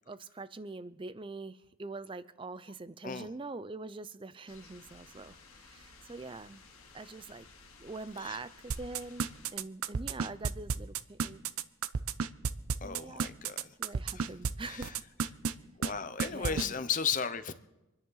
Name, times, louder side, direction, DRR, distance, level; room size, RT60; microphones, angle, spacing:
voice 1, 0.1-6.6 6.9-7.5 7.8-11.4 12.8-13.3 13.8-15.0 16.3-16.7, right 3 dB, 25° right, 15 dB, 0.4 m, -44 dB
sound 1, 4.5-9.5, left 4 dB, 85° left, 2.0 m, -56 dB
sound 2, 8.7-14.5 14.8-15.5 15.8-15.9 16.2-16.7, right 6 dB, 85° right, 0.6 m, -31 dB
voice 2, 12.8-13.8 14.1-14.3 14.6-15.0 15.8-17.5, left 7 dB, 35° left, 12 dB, 0.7 m, -35 dB
26.0 x 10.0 x 4.0 m, 0.99 s
head